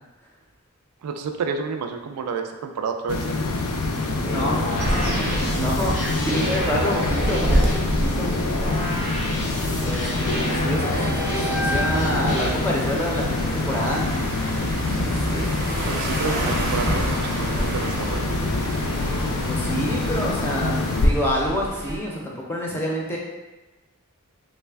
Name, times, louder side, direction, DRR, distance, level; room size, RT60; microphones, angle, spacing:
voice 1, 1.0-3.2 15.9-18.3, right 5 dB, 90° right, 5 dB, 0.3 m, -30 dB
sound 1, 3.1-21.1, left 2 dB, 65° left, 0.4 m, -26 dB
sound 2, 4.0-12.5, equal, 85° left, 1.1 m, -29 dB
voice 2, 4.3-4.7 5.0-8.3 9.8-14.1 14.9-15.8 16.2-16.3 19.5-20.8 21.0-23.2, equal, 10° left, -3 dB, 0.5 m, -28 dB
sound 3, 4.8-22.0, right 1 dB, 40° right, 0.6 m, -30 dB
3.2 x 2.1 x 3.3 m, 1.1 s
head